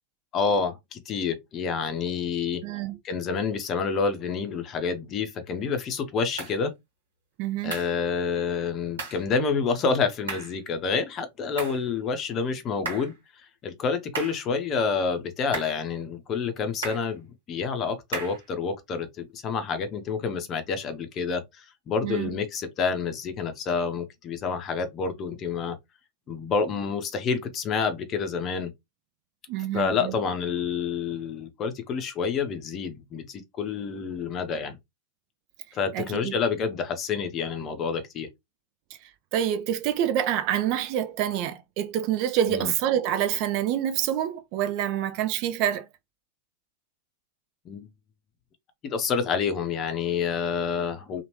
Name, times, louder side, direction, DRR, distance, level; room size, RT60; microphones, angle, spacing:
voice 1, 0.3-2.6 3.0-6.7 7.6-25.8 26.3-28.7 29.7-34.8 35.7-38.3 42.5-42.7 47.7-47.9 48.8-51.2, left 5 dB, 30° left, 0.7 m, -28 dB
voice 2, 2.6-3.0 7.4-7.7 22.0-22.3 29.5-30.2 35.9-36.3 39.3-45.8, right 11 dB, 45° right, 0.5 m, -27 dB
sound 1, 6.4-6.6 7.7-8.0 9.0-9.2 10.3-10.6 11.6-11.8 12.8-13.2 14.1-14.5 15.5-15.8 16.8-17.1 18.1-18.4, right 4 dB, 70° right, 1.6 m, -35 dB
2.9 x 2.5 x 3.0 m
figure-of-eight pair, 90°, 0 cm